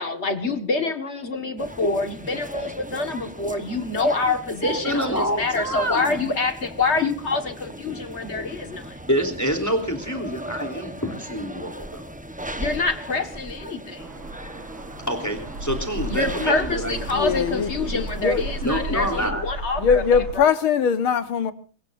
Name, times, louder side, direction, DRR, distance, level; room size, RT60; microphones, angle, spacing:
voice 1, 0.0-9.0 12.6-14.1 16.1-20.5, left 3 dB, 35° left, 1.9 m, -26 dB
sound 1, 1.6-19.3, right 1 dB, 10° right, 0.6 m, -38 dB
voice 2, 4.6-6.2 9.1-12.0 15.1-17.0 18.6-19.4, equal, 10° left, 3.4 m, -26 dB
sound 2, 14.0-20.3, right 1 dB, 70° right, 2.5 m, -34 dB
voice 3, 17.1-18.4 19.8-21.5, left 7 dB, 85° left, 2.2 m, -21 dB
24.0 x 21.5 x 2.7 m
omnidirectional pair, 2.2 m